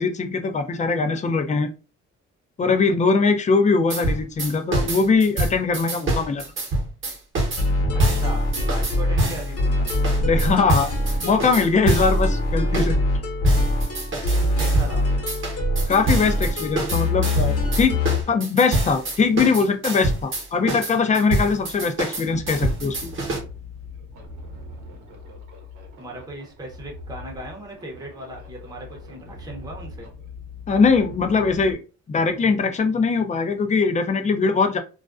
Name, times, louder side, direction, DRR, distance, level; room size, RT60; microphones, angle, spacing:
voice 1, 0.0-1.7 2.6-6.4 10.2-10.9 11.2-13.0 15.9-18.0 18.3-23.0 30.7-31.8 32.1-34.8, left 4 dB, 25° left, 6 dB, 0.4 m, -21 dB
sound 1, 3.9-9.5 9.9-12.2 12.7-12.9 13.4-15.0 15.3-23.4, right 2 dB, 40° right, 0.9 m, -26 dB
sound 2, 7.6-18.2, left 1 dB, 50° left, 1.0 m, -23 dB
voice 2, 7.9-9.9 14.3-15.5 26.0-30.1, right 1 dB, 15° right, 0 dB, 0.7 m, -38 dB
sound 3, 22.2-31.7, left 2 dB, 80° right, 0.8 m, -41 dB
2.3 x 2.2 x 2.4 m, 0.33 s
cardioid pair, 90°, 30 cm